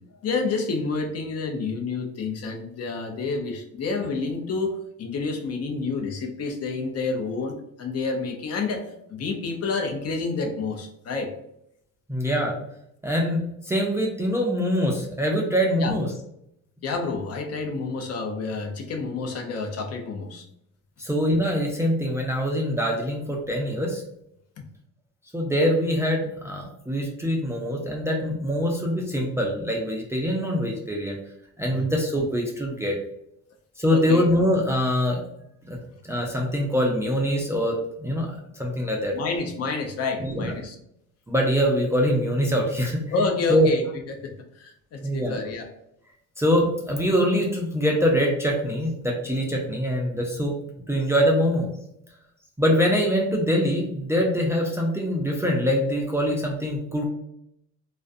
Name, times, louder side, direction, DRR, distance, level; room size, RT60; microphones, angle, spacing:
voice 1, 0.2-11.3 15.8-15.9 16.8-20.5 24.6-24.7 31.7-31.9 33.9-34.2 39.1-40.8 43.1-43.8 44.1-45.7, left 4 dB, 50° left, 3 dB, 0.6 m, -29 dB
voice 2, 12.1-12.6 13.0-16.1 21.0-24.0 25.3-31.2 31.6-33.0 33.8-35.2 35.6-35.8 36.0-39.2 40.2-40.5 41.3-43.0 43.5-43.7 45.0-45.4 46.4-50.6 50.9-51.7 52.6-57.1, equal, 10° right, -1 dB, 0.4 m, -24 dB
2.4 x 2.1 x 2.5 m, 0.75 s
cardioid pair, 100°, 33 cm